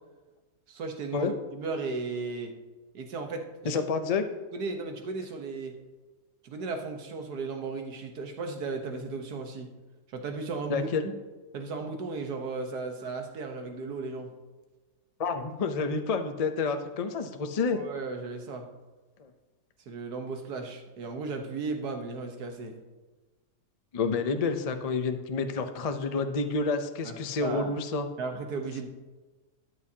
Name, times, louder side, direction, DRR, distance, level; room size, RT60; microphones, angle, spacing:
voice 1, 0.7-2.5 2.9-3.8 4.5-5.7 6.4-9.7 10.1-11.1 11.5-14.3 17.7-18.7 19.9-22.8 27.0-27.7 28.2-28.9, right 4 dB, 75° right, 4 dB, 1.7 m, -35 dB
voice 2, 3.6-4.2 10.7-11.1 15.2-17.8 19.2-19.3 23.9-28.1, left 4 dB, 60° left, 7 dB, 0.4 m, -29 dB
13.0 x 9.7 x 2.8 m, 1.2 s
omnidirectional pair, 1.7 m